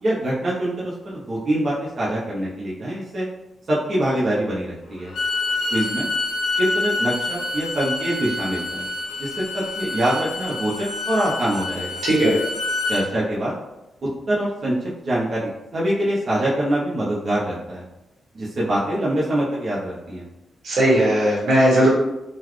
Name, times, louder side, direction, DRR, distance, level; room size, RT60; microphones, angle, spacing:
voice 1, 0.0-3.2 3.7-5.1 5.7-6.1 6.6-8.8 9.2-12.0 12.9-13.5 14.3-14.7 15.0-17.8 18.3-20.2, right 1 dB, 45° right, -7 dB, 0.7 m, -24 dB
Bowed string instrument, 5.0-13.0, left 3 dB, 75° left, 1.1 m, -27 dB
voice 2, 12.0-12.4 20.6-21.9, right 1 dB, 85° right, -5 dB, 1.5 m, -17 dB
3.9 x 2.2 x 3.0 m, 0.95 s
wide cardioid pair, 145°, 0 cm